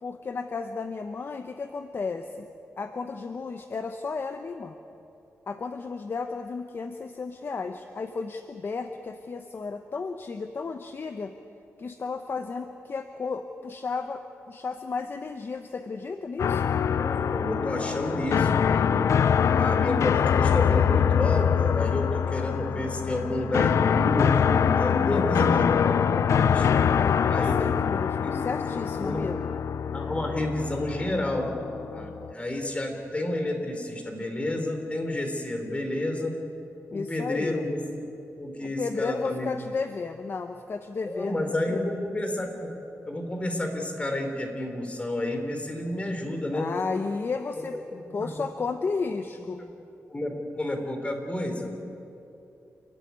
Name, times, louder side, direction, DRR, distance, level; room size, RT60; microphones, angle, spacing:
voice 1, 0.0-2.5 2.8-4.7 5.5-11.3 11.8-14.2 14.5-16.6 26.9-29.5 36.9-37.6 38.6-41.4 41.7-41.8 46.5-49.6, left 4 dB, 45° left, 8 dB, 0.9 m, -33 dB
sound 1, 16.4-32.3, left 7 dB, 70° left, 0.5 m, -24 dB
voice 2, 16.9-19.0 19.5-26.7 27.3-27.9 28.2-28.4 29.0-29.3 29.9-31.5 31.9-36.3 36.9-38.0 38.4-39.5 41.1-42.7 43.1-46.7 48.2-48.3 50.1-51.8, left 1 dB, 25° left, 4 dB, 3.7 m, -30 dB
29.0 x 13.0 x 9.6 m, 2.9 s
wide cardioid pair, 105°, 5 cm